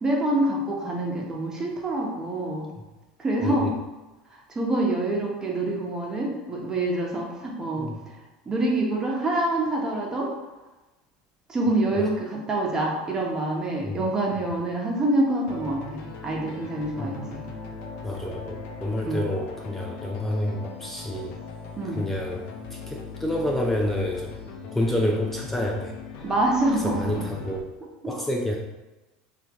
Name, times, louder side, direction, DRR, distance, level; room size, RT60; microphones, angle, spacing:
voice 1, 0.0-2.7 3.2-3.7 4.5-7.9 8.4-10.3 11.5-17.4 19.0-19.2 21.8-22.0 26.2-27.2, right 2 dB, 20° right, -2 dB, 1.2 m, -26 dB
voice 2, 3.4-3.7 7.8-8.0 11.9-12.0 13.8-14.0 17.0-17.2 18.0-21.3 21.9-24.3 24.7-25.9 26.8-27.7 28.1-28.6, left 1 dB, 5° left, 0 dB, 0.5 m, -28 dB
sound 1, 15.5-27.6, left 4 dB, 60° left, 0.8 m, -39 dB
5.7 x 2.8 x 3.1 m, 1.1 s
supercardioid pair, 110°, 3 cm